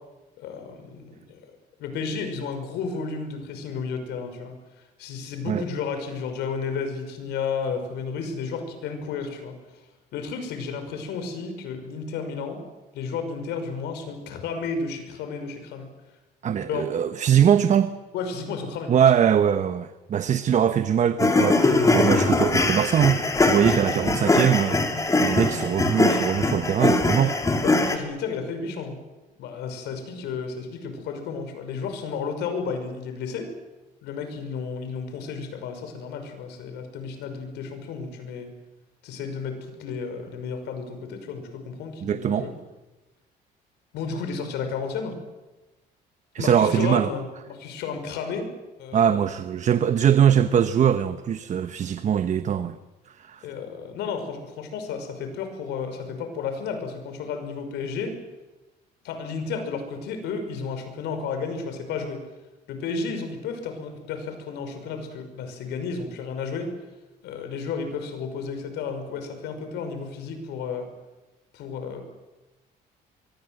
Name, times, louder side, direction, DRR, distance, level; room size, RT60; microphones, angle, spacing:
voice 1, 0.4-1.4 1.8-4.6 5.0-9.6 10.1-12.6 12.9-15.9 16.6-16.9 18.1-18.9 23.7-23.8 27.6-29.0 29.4-33.5 34.0-38.5 39.0-42.5 43.9-45.2 46.4-48.5 48.8-49.1 53.4-58.2 59.0-62.2 62.7-66.7 67.2-70.9 71.5-72.1, left 5 dB, 85° left, 7 dB, 5.8 m, -32 dB
voice 2, 16.4-17.9 18.9-27.4 42.0-42.5 46.3-47.1 48.9-52.8 53.1-53.5, right 9 dB, 45° right, 11 dB, 1.1 m, -22 dB
sound 1, 21.2-28.0, left 2 dB, 20° left, 3.5 m, -22 dB
25.0 x 23.5 x 7.9 m, 1.1 s
cardioid pair, 110°, 17 cm